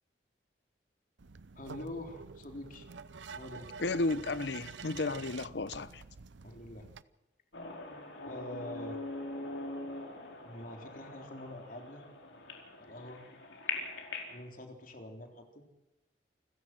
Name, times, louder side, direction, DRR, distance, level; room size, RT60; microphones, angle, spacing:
sound 1, 1.2-7.0, right 5 dB, 90° right, 0.7 m, -48 dB
voice 1, 1.6-2.9 3.3-3.7 6.4-6.9 8.2-9.0 10.4-12.0 12.8-13.2 14.3-15.6, left 1 dB, 50° left, 3.7 m, -45 dB
voice 2, 3.8-6.0, left 2 dB, 70° left, 0.8 m, -33 dB
sound 2, 7.5-14.4, left 3 dB, 90° left, 4.6 m, -42 dB
28.5 x 16.0 x 6.2 m
head